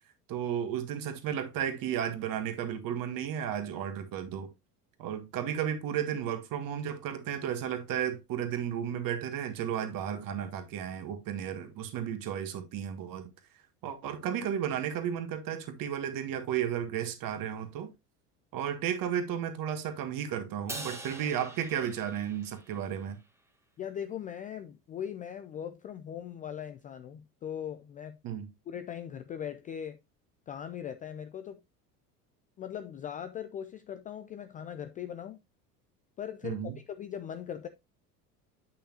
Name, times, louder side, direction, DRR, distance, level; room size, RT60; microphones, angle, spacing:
voice 1, 0.3-4.5 5.0-13.3 13.8-17.9 18.5-23.2 28.2-28.5 36.4-36.8, right 9 dB, 45° right, 1.7 m, -33 dB
Crash cymbal, 20.7-23.1, right 2 dB, 5° right, 1.3 m, -44 dB
voice 2, 23.8-28.2 28.7-30.0 30.5-31.6 32.6-35.4 36.2-36.6 36.9-37.7, left 9 dB, 20° left, 0.3 m, -39 dB
8.7 x 5.8 x 2.8 m
figure-of-eight pair, 70°, 48 cm